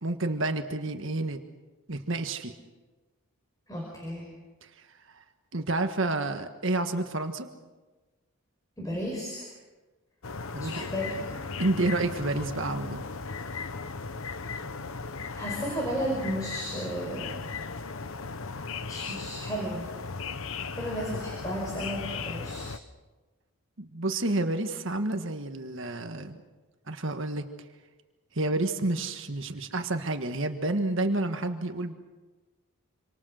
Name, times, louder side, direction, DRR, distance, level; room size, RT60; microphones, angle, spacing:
voice 1, 0.0-1.4 1.9-2.5 5.5-7.5 10.5-10.9 11.6-13.0 23.8-26.4 26.9-27.4 28.3-31.9, right 2 dB, 55° right, 6 dB, 1.6 m, -29 dB
voice 2, 3.7-4.3 8.8-9.5 10.6-11.4 15.3-17.3 18.8-19.9 20.8-22.7, equal, 15° left, -1 dB, 5.0 m, -34 dB
sound 1, 10.2-22.8, left 4 dB, 65° left, 1.0 m, -37 dB
27.0 x 26.5 x 6.5 m, 1.2 s
head